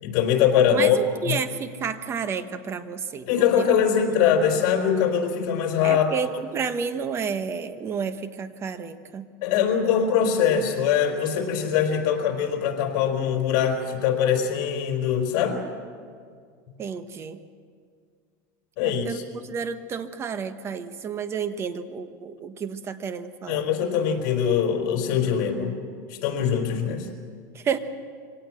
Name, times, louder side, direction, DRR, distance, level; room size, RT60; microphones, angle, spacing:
voice 1, 0.0-1.0 1.3-1.4 3.3-6.1 9.4-15.6 18.8-19.2 23.5-25.7 26.1-27.1, left 8 dB, 55° left, 3 dB, 4.5 m, -22 dB
voice 2, 0.7-3.7 5.8-9.3 16.8-17.4 18.8-19.2 19.4-23.6 27.5-27.8, right 6 dB, 25° right, 10 dB, 1.2 m, -31 dB
24.5 x 18.0 x 7.7 m, 2.1 s
supercardioid pair, 135°, 10 cm